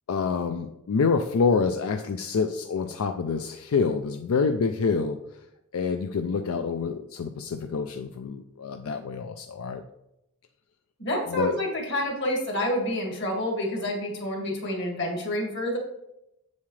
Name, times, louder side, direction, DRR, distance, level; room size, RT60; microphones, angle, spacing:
voice 1, 0.1-5.2 5.7-9.8 11.3-11.6, left 5 dB, 80° left, 7 dB, 0.4 m, -27 dB
voice 2, 11.0-15.8, left 1 dB, 50° left, 1 dB, 1.9 m, -28 dB
7.6 x 7.1 x 3.2 m, 0.86 s
head